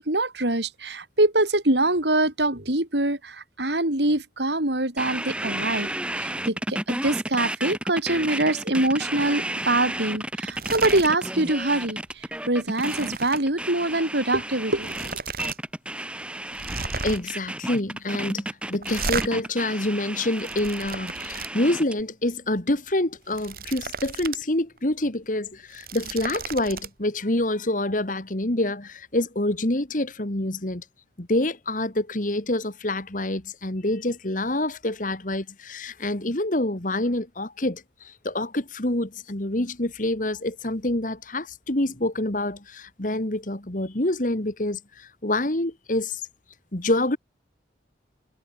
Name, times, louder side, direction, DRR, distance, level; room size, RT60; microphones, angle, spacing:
voice 1, 0.0-15.1, right 2 dB, 75° right, 4.7 m, -24 dB
sound 1, 5.0-22.0, right 1 dB, 5° right, 3.7 m, -32 dB
sound 2, 10.5-11.1 11.5-11.7 12.1-13.4 14.4-14.5 14.8-15.6 15.9-16.0 16.5-17.4 18.8-19.3 20.1-21.5 23.1-24.4 24.8-24.9 25.6-26.9, right 4 dB, 55° right, 3.9 m, -34 dB
voice 2, 17.0-30.8 31.2-46.2 46.7-47.2, left 1 dB, 45° left, 2.1 m, -27 dB
head